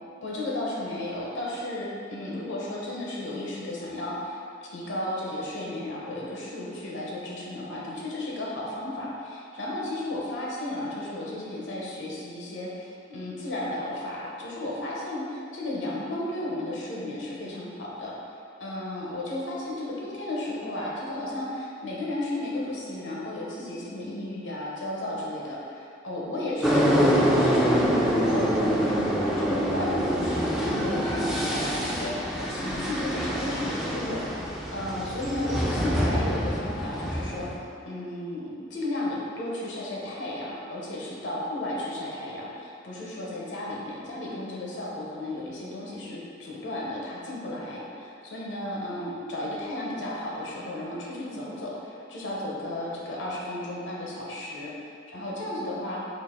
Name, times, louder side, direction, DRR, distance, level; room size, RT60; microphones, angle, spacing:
voice 1, 0.2-34.3 34.7-56.0, left 1 dB, 70° left, -5 dB, 0.8 m, -34 dB
sound 1, 26.6-37.6, equal, ahead, 0.3 m, -25 dB
3.9 x 2.4 x 3.7 m, 2.5 s
head